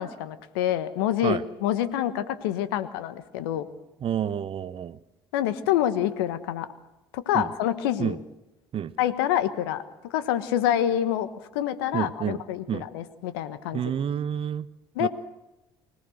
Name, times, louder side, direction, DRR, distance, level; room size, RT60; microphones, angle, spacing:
voice 1, 0.0-3.7 5.3-6.7 7.1-8.2 9.0-11.3 11.5-13.8 14.9-15.1, left 11 dB, 80° left, 13 dB, 1.3 m, -27 dB
voice 2, 4.0-5.0 7.3-7.5 8.0-8.2 8.7-8.9 11.9-12.4 12.7-12.9 13.7-14.7 15.0-15.1, right 9 dB, 45° right, 15 dB, 1.0 m, -29 dB
24.5 x 17.5 x 6.5 m, 0.98 s
hypercardioid pair, 60°, 12 cm